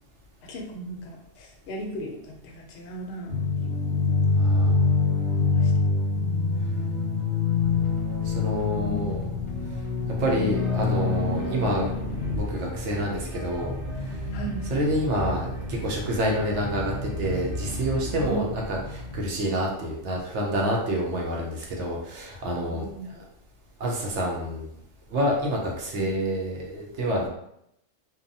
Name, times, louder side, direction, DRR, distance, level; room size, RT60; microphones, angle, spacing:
voice 1, 0.4-4.2 5.3-6.0 6.6-7.6 8.6-9.4 14.3-14.7 18.2-18.5 22.7-23.1 26.0-26.1, right 2 dB, 65° left, 1 dB, 0.8 m, -38 dB
sound 1, 3.3-12.4, left 4 dB, 90° right, 1.3 m, -25 dB
voice 2, 4.3-5.0 8.2-9.2 10.2-11.9 12.3-14.2 14.7-23.2 23.8-24.7 25.1-27.3, equal, 70° right, -1 dB, 0.9 m, -28 dB
sound 2, 7.6-19.3, left 2 dB, 45° left, 0.4 m, -38 dB
sound 3, 10.5-18.4, equal, 10° left, 0.9 m, -35 dB
2.7 x 2.2 x 2.6 m, 0.77 s
omnidirectional pair, 1.3 m